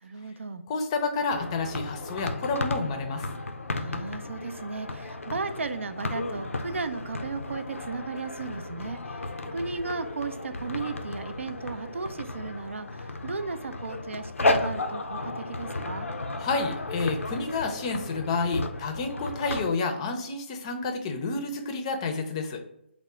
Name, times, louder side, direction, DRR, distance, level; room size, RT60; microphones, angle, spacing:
voice 1, 0.0-0.6 3.8-16.1, right 4 dB, 75° right, 10 dB, 0.4 m, -35 dB
voice 2, 0.7-3.3 16.4-22.6, left 3 dB, 25° left, 5 dB, 0.4 m, -29 dB
sound 1, 1.3-19.7, left 2 dB, 85° left, 0.4 m, -34 dB
3.5 x 2.0 x 4.1 m, 0.77 s
figure-of-eight pair, 145°, 7 cm